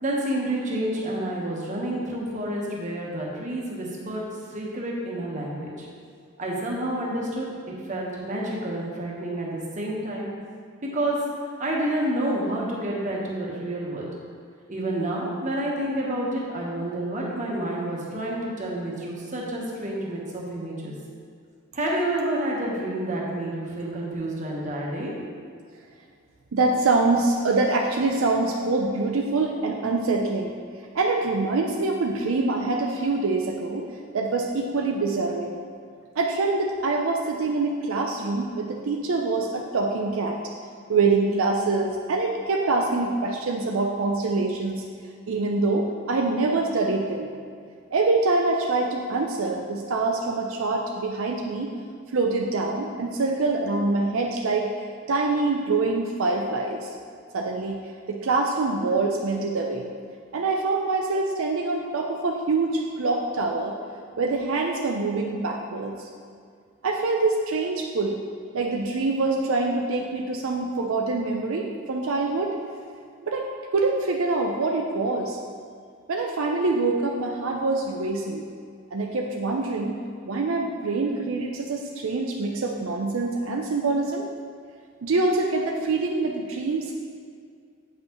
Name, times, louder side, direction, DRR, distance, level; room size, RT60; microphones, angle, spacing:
voice 1, 0.0-4.2 4.5-5.9 6.4-7.5 7.9-10.3 10.9-11.2 11.6-14.1 14.7-20.9 21.7-25.1, right 1 dB, 40° right, -3 dB, 1.2 m, -29 dB
voice 2, 26.5-30.5 30.9-33.9 34.1-35.5 36.2-40.4 40.9-44.8 45.3-47.3 47.9-51.7 52.1-56.9 57.3-57.8 58.1-59.8 60.3-63.7 64.2-66.0 66.8-68.2 68.5-72.5 73.2-73.4 73.7-75.4 76.1-78.4 78.9-80.0 80.2-84.3 85.0-86.9, right 3 dB, 80° right, 1 dB, 0.5 m, -25 dB
8.0 x 5.4 x 3.0 m, 2.2 s
head